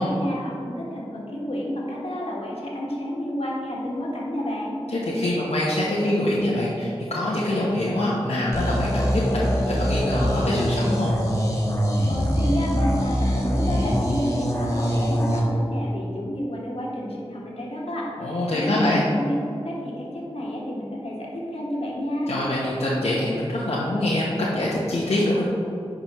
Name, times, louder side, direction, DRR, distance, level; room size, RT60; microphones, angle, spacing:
voice 1, 0.0-4.8 12.1-19.4 19.6-22.3, equal, 70° left, -4 dB, 1.6 m, -30 dB
voice 2, 4.9-11.1 18.2-19.0 22.3-25.5, left 1 dB, 85° left, -7 dB, 1.0 m, -24 dB
sound 1, 8.5-15.4, equal, 30° left, 1.4 m, -23 dB
10.0 x 5.1 x 3.1 m, 2.7 s
wide cardioid pair, 50°, 10 cm